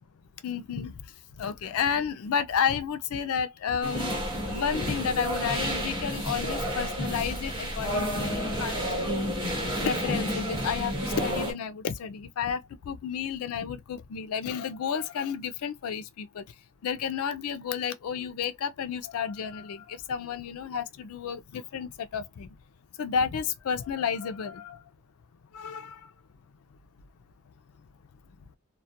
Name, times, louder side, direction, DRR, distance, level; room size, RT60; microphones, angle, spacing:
voice 1, 0.4-0.9 1.4-4.1 4.5-9.3 9.8-12.6 12.9-16.4 16.8-22.5 23.0-24.8 25.5-26.0, left 7 dB, 75° left, 0.4 m, -31 dB
sound 1, 3.8-11.5, equal, 20° right, 1.0 m, -30 dB
2.3 x 2.1 x 2.6 m
head